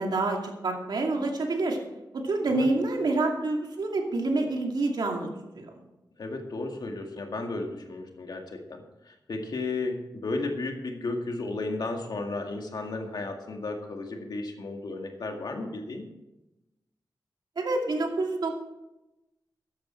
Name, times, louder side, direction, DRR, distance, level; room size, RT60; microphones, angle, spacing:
voice 1, 0.0-1.8 2.1-5.3 5.6-5.7 17.6-18.5, right 2 dB, 80° right, 2 dB, 2.4 m, -27 dB
voice 2, 6.2-16.0, left 3 dB, 70° left, 3 dB, 2.0 m, -34 dB
14.0 x 10.5 x 4.5 m, 0.95 s
wide cardioid pair, 80°, 7 cm